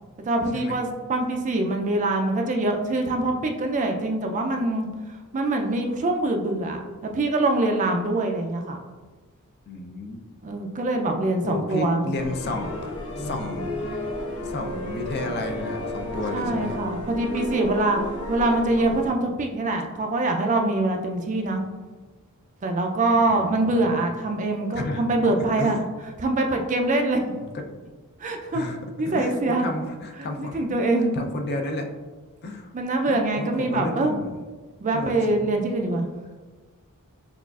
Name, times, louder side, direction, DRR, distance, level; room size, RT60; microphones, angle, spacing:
voice 1, 0.3-8.8 10.4-12.1 16.3-18.0 18.3-21.6 22.6-25.8 26.2-27.2 28.2-28.6 29.0-29.7 30.5-31.1 32.7-34.1 34.8-36.1, right 2 dB, 35° right, 3 dB, 0.4 m, -24 dB
voice 2, 9.7-10.2 11.4-13.7 14.4-16.8 23.1-24.0 24.7-25.8 27.3-27.6 28.5-28.8 29.1-30.6 31.1-31.9 32.4-32.7 33.1-34.3 34.9-35.5, left 2 dB, 45° left, 3 dB, 0.4 m, -32 dB
sound 1, 12.1-19.1, left 1 dB, 85° left, 1.2 m, -32 dB
6.0 x 2.4 x 2.3 m, 1.3 s
head